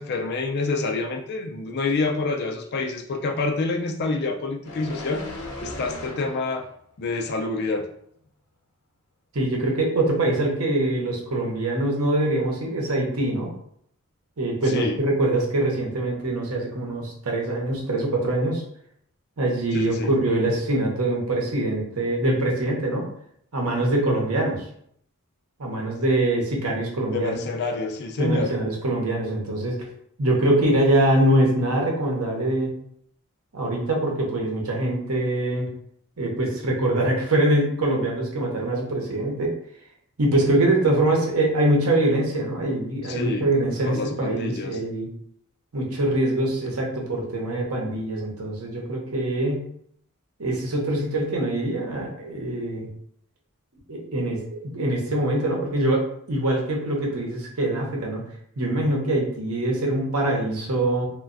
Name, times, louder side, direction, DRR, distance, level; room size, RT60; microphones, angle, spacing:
voice 1, 0.0-5.3 5.6-6.7 7.0-7.9 14.7-15.0 19.7-20.1 27.1-28.5 43.1-43.5 43.8-44.8, left 3 dB, 50° left, 4 dB, 0.4 m, -27 dB
sound 1, 4.6-6.7 7.1-7.3, left 1 dB, 75° left, 0.7 m, -37 dB
voice 2, 9.3-13.5 14.4-18.6 19.4-23.1 23.5-24.6 25.6-27.4 28.2-29.8 30.2-32.7 33.5-35.7 36.2-39.5 40.2-45.1 45.7-49.6 50.4-52.9 53.9-58.2 58.6-61.1, right 1 dB, 85° right, -1 dB, 0.8 m, -23 dB
3.1 x 2.2 x 2.5 m, 0.68 s
head